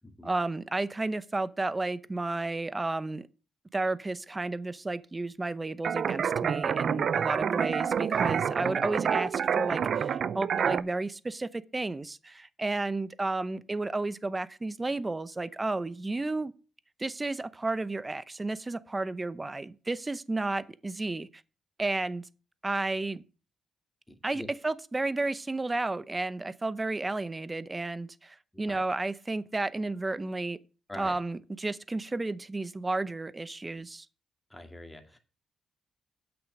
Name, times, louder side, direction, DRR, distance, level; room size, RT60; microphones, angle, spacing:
voice 1, 0.2-3.3 3.7-16.5 17.0-21.4 21.8-22.2 22.6-23.2 24.2-30.6 31.0-34.1, right 2 dB, 20° right, 0.7 m, -32 dB
sound 1, 5.8-10.8, right 7 dB, 60° right, 0.5 m, -28 dB
voice 2, 24.1-24.5 28.5-28.8 30.9-31.2 34.5-35.2, left 1 dB, 10° left, 2.1 m, -45 dB
8.3 x 6.2 x 6.4 m
cardioid pair, 80°, 0 cm